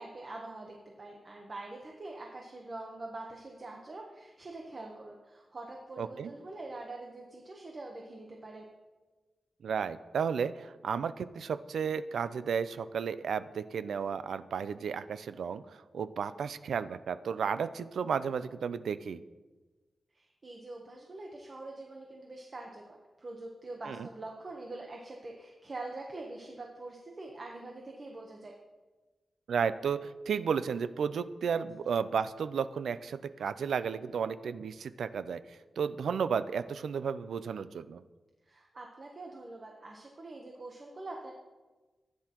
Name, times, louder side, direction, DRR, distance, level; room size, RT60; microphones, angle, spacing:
voice 1, 0.0-8.7 20.1-28.5 38.4-41.3, right 2 dB, 30° right, 0 dB, 1.0 m, -44 dB
voice 2, 6.0-6.3 9.6-15.6 15.9-19.2 23.8-24.1 29.5-38.0, right 6 dB, 85° right, 13 dB, 0.4 m, -33 dB
15.0 x 9.6 x 3.0 m, 1.2 s
wide cardioid pair, 170°, 0 cm